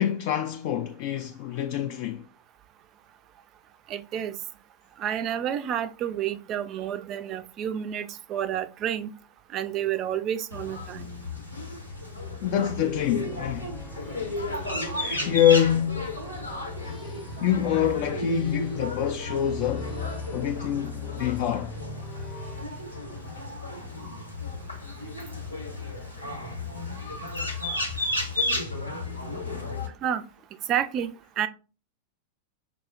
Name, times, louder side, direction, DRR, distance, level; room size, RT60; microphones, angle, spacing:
voice 1, 0.0-2.2 12.4-13.7 15.0-16.1 17.4-19.9 20.3-21.7 29.4-29.7, left 10 dB, 45° left, 0.3 m, -26 dB
voice 2, 3.9-4.4 5.0-9.1 9.5-11.1 30.0-30.2 30.7-31.5, right 10 dB, 35° right, 0.3 m, -30 dB
sound 1, 10.5-29.9, left 2 dB, 85° left, 0.8 m, -33 dB
sound 2, 12.9-22.7, left 4 dB, 15° left, 0.7 m, -42 dB
5.9 x 2.0 x 2.4 m
figure-of-eight pair, 90°, 0 cm